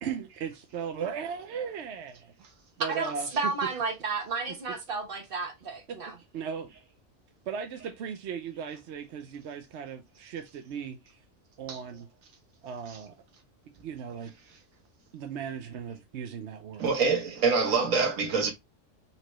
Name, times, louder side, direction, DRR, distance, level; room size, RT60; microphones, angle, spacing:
voice 1, 0.0-2.3 2.8-3.7 4.5-4.6 5.9-6.0 6.3-6.7 7.5-11.0 11.6-12.1 12.6-13.2 13.8-14.3 15.1-16.9, right 7 dB, 65° right, 0.8 m, -37 dB
voice 2, 2.9-6.1, right 4 dB, 45° right, 1.3 m, -32 dB
voice 3, 16.8-18.5, right 4 dB, 90° right, 1.4 m, -25 dB
4.3 x 3.0 x 3.0 m
omnidirectional pair, 1.3 m